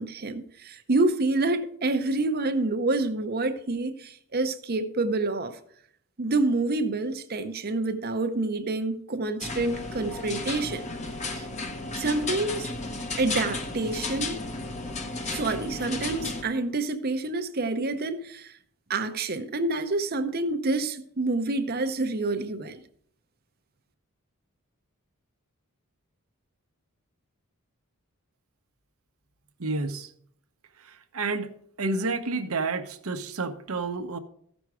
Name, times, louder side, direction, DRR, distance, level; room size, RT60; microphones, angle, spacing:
voice 1, 0.0-5.6 6.2-10.8 11.3-11.5 12.0-12.7 13.2-14.4 15.2-18.6 18.9-22.8, right 2 dB, 45° right, 0.7 m, -27 dB
sound 1, 9.4-16.4, left 3 dB, 30° left, 0.9 m, -33 dB
voice 2, 29.6-30.1 30.8-31.5 31.8-34.2, right 3 dB, 70° right, 0.9 m, -30 dB
14.5 x 6.1 x 4.8 m
head